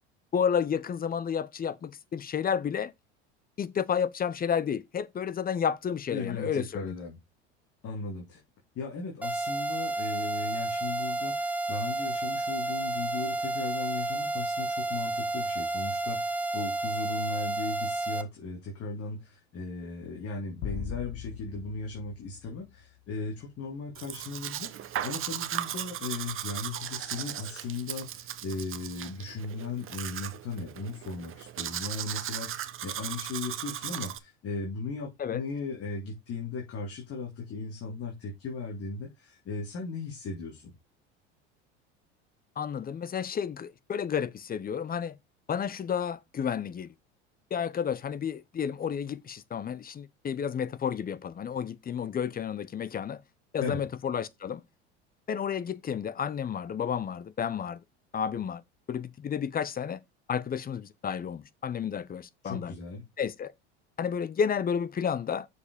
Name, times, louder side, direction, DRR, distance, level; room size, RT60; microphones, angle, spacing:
voice 1, 0.3-2.9 3.6-6.9 35.2-35.4 42.6-45.1 45.5-46.9 47.5-53.2 53.5-54.6 55.3-57.8 58.1-58.6 58.9-60.0 60.3-62.7 63.2-63.5 64.0-65.5, left 7 dB, 25° left, 0.8 m, -31 dB
voice 2, 6.1-7.2 7.8-8.4 8.8-40.7 53.6-53.8 62.4-63.0, left 4 dB, 40° left, 2.3 m, -37 dB
sound 1, 9.2-18.2, right 2 dB, 5° right, 0.9 m, -31 dB
sound 2, 20.6-23.2, left 9 dB, 65° left, 2.3 m, -40 dB
Domestic sounds home sounds, 23.9-34.2, right 11 dB, 35° right, 0.9 m, -37 dB
6.8 x 5.0 x 5.1 m
hypercardioid pair, 85°, 34 cm